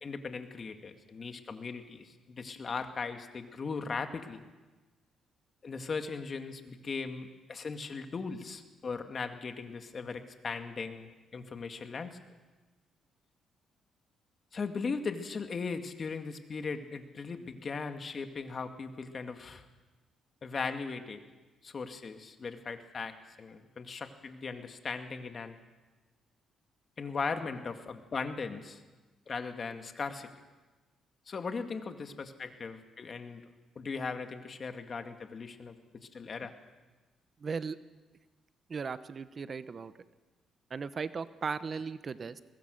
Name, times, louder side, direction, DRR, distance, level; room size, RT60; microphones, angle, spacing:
voice 1, 0.0-4.4 5.6-12.2 14.5-19.6 20.4-21.2 21.6-25.6 27.0-28.8 29.3-30.3 31.3-33.4 33.8-36.5, left 4 dB, 40° left, 6 dB, 2.1 m, -38 dB
voice 2, 37.4-37.8 38.7-39.9 40.7-42.4, right 5 dB, 40° right, 13 dB, 0.8 m, -37 dB
22.5 x 20.5 x 6.5 m, 1.2 s
cardioid pair, 90°, 0 cm